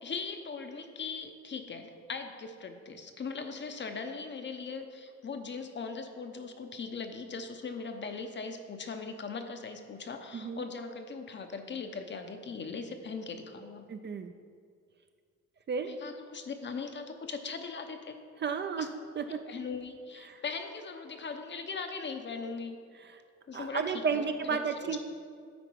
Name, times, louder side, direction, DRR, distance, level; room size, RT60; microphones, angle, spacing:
voice 1, 0.0-13.8 15.8-18.2 18.8-18.9 19.3-22.8 23.5-24.2 24.5-25.0, left 4 dB, 40° left, 6 dB, 0.7 m, -39 dB
voice 2, 10.3-10.6 13.9-14.3 15.7-15.9 18.4-19.4 20.2-20.4 23.0-23.2 23.5-25.0, right 6 dB, 35° right, 8 dB, 0.5 m, -33 dB
9.5 x 3.9 x 4.6 m, 2.2 s
cardioid pair, 90°, 30 cm